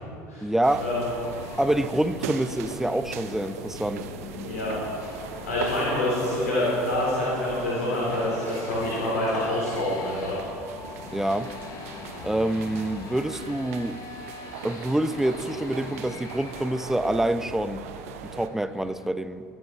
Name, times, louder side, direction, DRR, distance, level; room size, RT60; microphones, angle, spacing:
voice 1, 0.4-0.8 1.6-4.1 11.1-11.5 12.2-14.0 14.6-17.8 18.2-19.4, right 1 dB, 5° right, 13 dB, 0.7 m, -26 dB
sound 1, 0.6-18.5, right 7 dB, 70° right, 1.0 m, -40 dB
sound 2, 0.7-19.1, left 4 dB, 50° left, 1.7 m, -42 dB
voice 2, 5.4-10.4, left 1 dB, 75° left, -7 dB, 3.7 m, -26 dB
23.0 x 9.3 x 4.6 m, 2.6 s
figure-of-eight pair, 70°, 8 cm